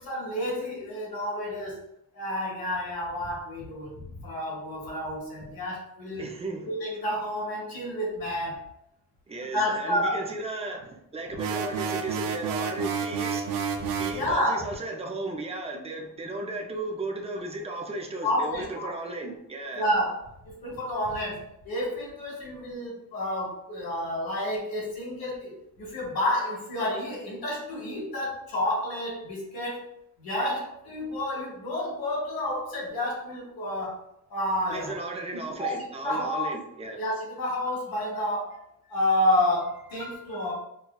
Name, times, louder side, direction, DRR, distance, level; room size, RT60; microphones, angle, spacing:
voice 1, 0.0-1.8 2.1-6.3 6.7-8.6 9.5-10.3 14.1-14.6 18.2-18.9 19.8-25.5 25.8-29.8 30.2-34.0 34.3-34.9 35.6-35.8 36.0-36.5 36.9-38.6 38.9-40.5, left 1 dB, 75° left, 1.3 m, -30 dB
voice 2, 6.2-6.7 9.3-13.5 14.0-19.8 34.7-37.0, right 2 dB, 15° right, 0.5 m, -35 dB
sound 1, 11.4-14.2, right 6 dB, 70° right, 0.5 m, -30 dB
6.0 x 2.2 x 2.3 m
wide cardioid pair, 150°, 36 cm